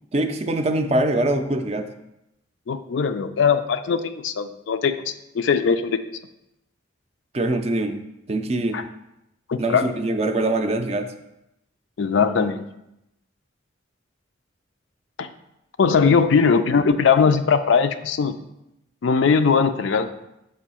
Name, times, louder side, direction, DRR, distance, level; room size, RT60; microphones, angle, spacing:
voice 1, 0.1-1.9 7.3-8.0 8.3-8.8 9.6-11.1 16.0-16.2, right 2 dB, 30° right, 6 dB, 0.4 m, -23 dB
voice 2, 2.7-6.0 8.7-8.8 9.5-9.9 12.0-12.6 15.2-15.3 15.8-18.3 19.0-20.1, left 5 dB, 70° left, 9 dB, 0.4 m, -20 dB
6.9 x 2.7 x 5.5 m, 0.86 s
head